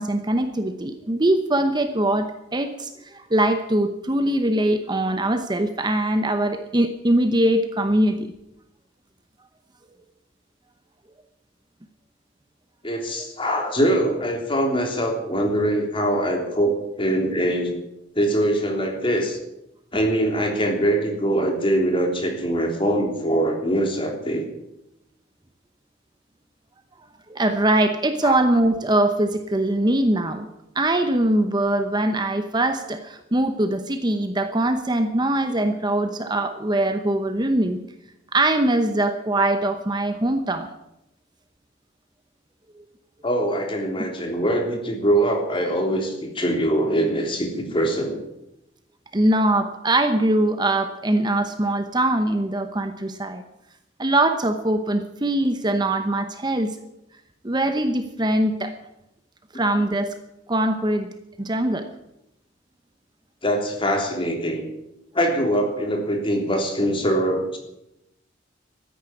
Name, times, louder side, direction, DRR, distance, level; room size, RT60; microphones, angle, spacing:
voice 1, 0.0-8.3 27.3-30.5 30.7-37.8 38.3-40.7 42.8-42.9 44.0-44.1 49.1-53.4 54.0-56.8 57.4-58.7 59.5-60.1 60.5-61.1 61.4-61.9, right 1 dB, 25° right, 8 dB, 0.9 m, -22 dB
voice 2, 12.8-17.7 18.1-19.4 19.9-24.4 28.2-28.4 43.2-48.1 59.5-59.6 63.4-64.7 65.1-67.6, right 1 dB, 30° left, 2 dB, 3.3 m, -23 dB
14.0 x 10.0 x 9.7 m, 0.86 s
head